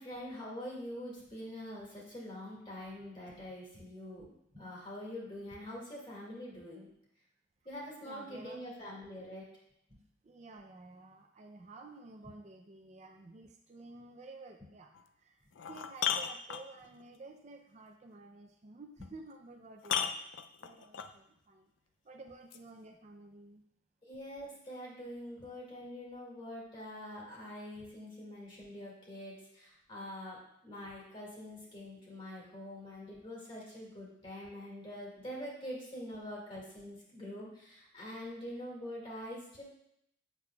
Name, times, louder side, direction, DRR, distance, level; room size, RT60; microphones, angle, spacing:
voice 1, 0.0-6.9 7.7-9.4 9.9-10.0 24.1-39.6, left 1 dB, 30° left, -4 dB, 2.0 m, -45 dB
voice 2, 8.0-9.3 10.2-14.9 15.2-20.3 20.6-21.7 22.0-23.6, right 2 dB, 35° right, 4 dB, 0.5 m, -52 dB
sound 1, 14.9-15.0 15.5-17.0 19.0-19.1 19.8-21.1 22.5-22.6, left 8 dB, 90° left, 0.4 m, -35 dB
8.3 x 6.8 x 2.3 m, 0.75 s
head